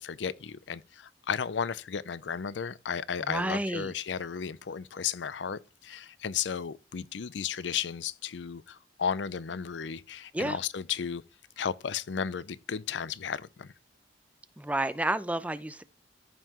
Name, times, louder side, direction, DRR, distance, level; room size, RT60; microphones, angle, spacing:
voice 1, 0.0-11.2 11.6-13.7, left 7 dB, 80° left, 0.5 m, -34 dB
voice 2, 3.3-3.9 10.3-10.6 14.6-15.8, right 1 dB, 10° right, 0.6 m, -30 dB
14.0 x 5.6 x 3.0 m
head